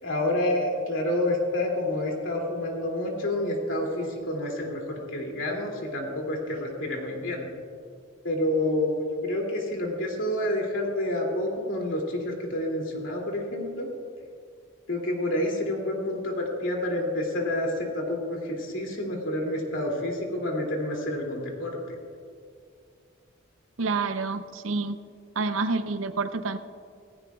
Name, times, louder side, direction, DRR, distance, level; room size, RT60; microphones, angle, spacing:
voice 1, 0.0-7.5 8.2-13.9 14.9-22.0, left 1 dB, 70° left, 0 dB, 2.7 m, -28 dB
voice 2, 23.8-25.0 25.4-26.6, right 4 dB, 85° right, 10 dB, 0.7 m, -28 dB
18.0 x 15.5 x 2.4 m, 2.3 s
head